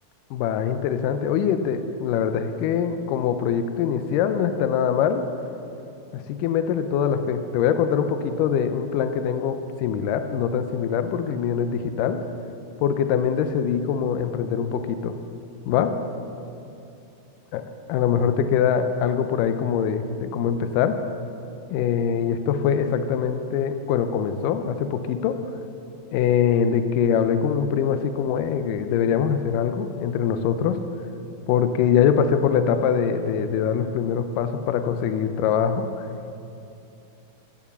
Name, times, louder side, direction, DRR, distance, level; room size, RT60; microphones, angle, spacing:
voice 1, 0.3-5.2 6.1-12.2 12.8-15.2 15.7-15.9 17.5-17.6 17.9-21.0 21.7-25.4 26.1-30.8 31.5-36.1, left 8 dB, 85° left, 9 dB, 1.9 m, -23 dB
12.5 x 7.5 x 6.9 m, 2.7 s
omnidirectional pair, 4.5 m